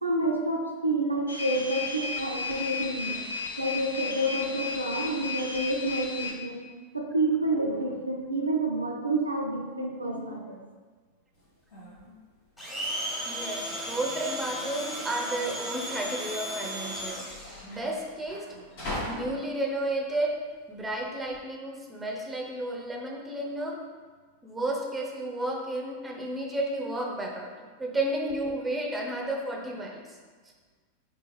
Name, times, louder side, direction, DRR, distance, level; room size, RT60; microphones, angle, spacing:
voice 1, 0.0-3.3 3.6-6.7 6.9-10.6, right 2 dB, 80° right, 0 dB, 0.4 m, -29 dB
sound 1, 1.3-6.3, left 5 dB, 70° left, 0.4 m, -34 dB
sound 2, 11.3-21.4, left 1 dB, 50° left, 1.0 m, -43 dB
Domestic sounds home sounds, 12.6-17.7, equal, 15° left, 1.0 m, -35 dB
voice 2, 13.3-17.3 17.6-18.4 18.9-20.4 20.7-23.8 24.4-30.0, right 1 dB, 10° right, 0 dB, 0.6 m, -32 dB
4.4 x 2.4 x 3.0 m, 1.4 s
figure-of-eight pair, 90°, 0 cm